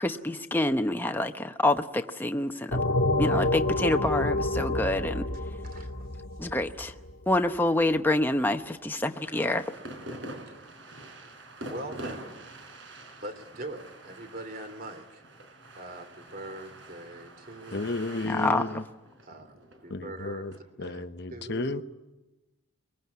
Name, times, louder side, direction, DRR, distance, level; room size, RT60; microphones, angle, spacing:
voice 1, 0.0-2.8 3.2-5.3 6.4-6.9 7.3-9.7 18.2-18.6, left 1 dB, 10° left, 0.9 m, -27 dB
sound 1, 2.7-7.1, left 1 dB, 80° left, 1.7 m, -28 dB
voice 2, 5.6-6.1 10.5-10.6 11.6-12.4 13.2-15.2 15.7-18.0 19.2-20.5 20.8-21.0 21.3-21.8, right 1 dB, 45° right, 3.0 m, -42 dB
sound 2, 9.1-20.6, right 1 dB, 60° right, 4.2 m, -45 dB
voice 3, 17.7-18.8 19.9-21.8, left 2 dB, 55° left, 1.0 m, -33 dB
23.5 x 22.5 x 9.6 m
head